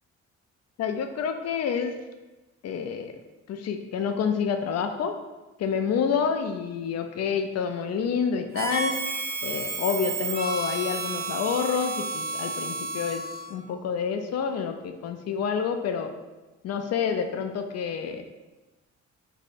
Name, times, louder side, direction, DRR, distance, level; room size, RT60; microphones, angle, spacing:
voice 1, 0.8-1.9 2.6-3.2 3.5-5.1 5.6-8.9 9.4-13.2 13.5-16.1 16.6-18.3, left 6 dB, 55° left, 7 dB, 0.5 m, -28 dB
Harmonica, 8.5-13.6, right 3 dB, 30° right, 0.5 m, -31 dB
3.2 x 2.6 x 4.2 m, 1.1 s
cardioid pair, 90°, 30 cm